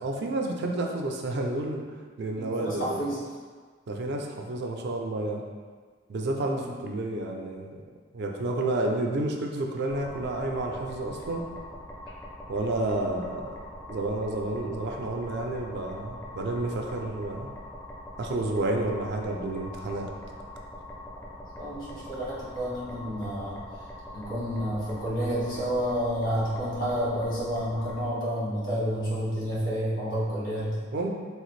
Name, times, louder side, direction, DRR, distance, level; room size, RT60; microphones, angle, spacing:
voice 1, 0.0-1.9 2.2-3.1 3.9-5.4 6.1-7.8 8.1-11.5 12.5-13.6 13.9-17.5 18.2-20.1 30.9-31.1, right 2 dB, 60° right, 2 dB, 0.4 m, -30 dB
voice 2, 2.4-3.2 6.5-6.7 21.6-23.6 24.1-30.9, equal, 75° left, -8 dB, 1.5 m, -30 dB
sound 1, 9.9-28.1, left 1 dB, 10° left, 0.4 m, -43 dB
3.3 x 2.4 x 3.1 m, 1.5 s
head